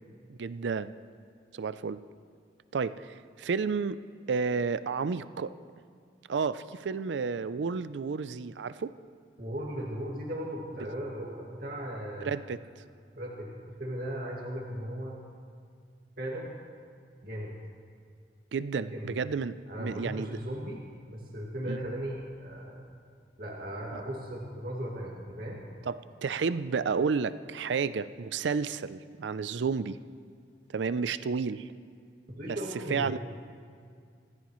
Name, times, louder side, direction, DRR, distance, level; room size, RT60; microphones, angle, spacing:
voice 1, 0.3-0.9 1.5-2.0 2.7-4.0 4.3-5.5 6.3-8.9 12.2-12.6 18.5-20.3 21.7-21.8 23.9-24.0 25.8-30.0 30.7-31.7 32.5-32.6 32.9-33.2, right 5 dB, 90° right, 14 dB, 0.4 m, -31 dB
voice 2, 9.4-12.3 13.1-13.5 13.8-15.2 16.2-16.6 17.2-17.5 18.8-19.2 19.7-20.8 21.1-22.8 23.4-25.6 32.3-33.1, equal, 55° right, -3 dB, 2.1 m, -37 dB
25.0 x 14.5 x 3.1 m, 2.2 s
head